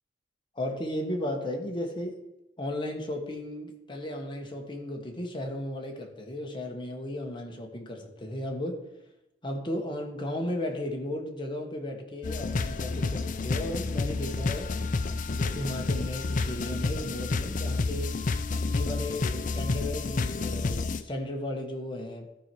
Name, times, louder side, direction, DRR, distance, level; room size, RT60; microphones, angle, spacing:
voice 1, 0.6-2.2 2.6-8.8 9.4-14.7 15.3-18.2 18.5-22.3, left 1 dB, 25° left, 2 dB, 1.4 m, -35 dB
sound 1, 12.2-21.0, left 3 dB, 45° left, 0.4 m, -30 dB
13.5 x 4.7 x 4.6 m, 0.94 s
head